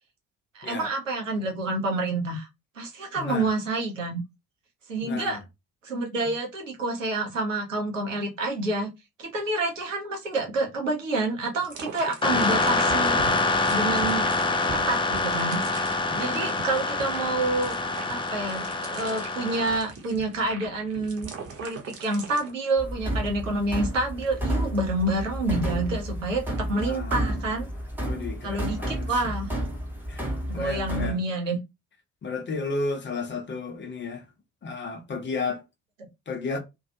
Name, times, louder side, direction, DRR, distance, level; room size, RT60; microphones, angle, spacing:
voice 1, 0.5-2.5 2.8-4.2 4.9-5.4 5.8-8.9 9.2-13.2 13.7-14.3 14.9-15.6 16.1-17.8 18.1-21.3 21.6-27.7 28.4-29.5 30.5-31.6, right 2 dB, 85° right, 0.6 m, -28 dB
voice 2, 3.2-3.5 5.0-5.4 6.3-6.4 16.1-16.5 26.8-27.4 28.0-29.3 30.1-30.2 30.5-31.2 32.2-34.3 34.6-35.6 36.3-36.6, left 3 dB, 30° left, 0.8 m, -33 dB
sound 1, 11.6-22.5, right 5 dB, 40° right, 0.9 m, -41 dB
sound 2, 12.2-19.8, left 3 dB, 15° left, 0.4 m, -26 dB
sound 3, 22.8-31.1, right 1 dB, 5° right, 1.0 m, -31 dB
2.5 x 2.3 x 2.6 m
figure-of-eight pair, 40°, 37 cm